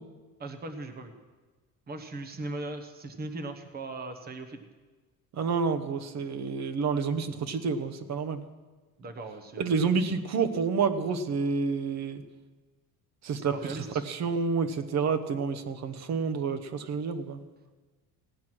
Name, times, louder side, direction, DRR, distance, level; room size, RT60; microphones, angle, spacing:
voice 1, 0.4-1.1 1.9-4.7 9.0-9.8 13.5-14.0, right 2 dB, 25° right, 7 dB, 1.1 m, -39 dB
voice 2, 5.3-8.4 9.6-12.2 13.2-17.4, right 5 dB, 45° right, 9 dB, 1.0 m, -29 dB
16.5 x 9.3 x 6.2 m, 1.3 s
cardioid pair, 155°, 38 cm